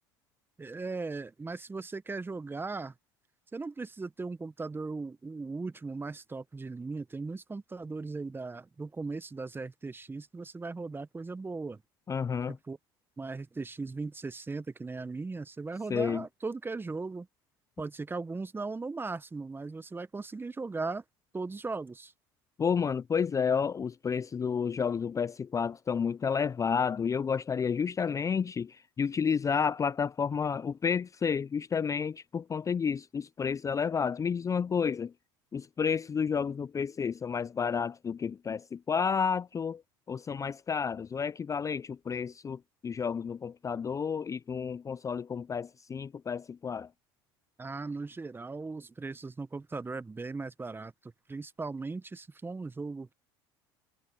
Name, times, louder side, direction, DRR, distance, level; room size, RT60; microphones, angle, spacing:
voice 1, 0.6-2.9 3.5-11.8 12.5-12.8 13.2-17.3 17.8-21.0 21.3-22.1 47.6-53.1, right 3 dB, 15° right, 1.2 m, -38 dB
voice 2, 12.1-12.6 15.9-16.2 22.6-35.1 35.5-39.8 40.1-46.9, left 6 dB, 25° left, 0.5 m, -31 dB
hypercardioid pair, 75°, 12 cm